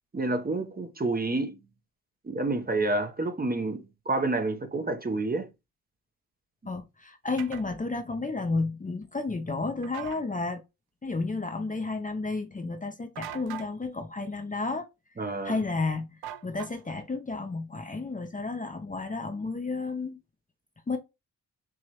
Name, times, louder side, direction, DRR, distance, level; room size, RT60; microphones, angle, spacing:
voice 1, 0.1-1.6 2.2-5.5 15.2-15.6, right 2 dB, 25° right, 0.9 m, -29 dB
voice 2, 6.6-10.6 11.0-14.9 15.4-20.2 20.9-21.0, left 3 dB, 20° left, 0.7 m, -32 dB
sound 1, 7.4-7.6 9.8-10.2 13.1-13.7 16.2-17.0, right 11 dB, 75° right, 0.5 m, -41 dB
4.8 x 2.9 x 2.9 m
supercardioid pair, 45°, 38 cm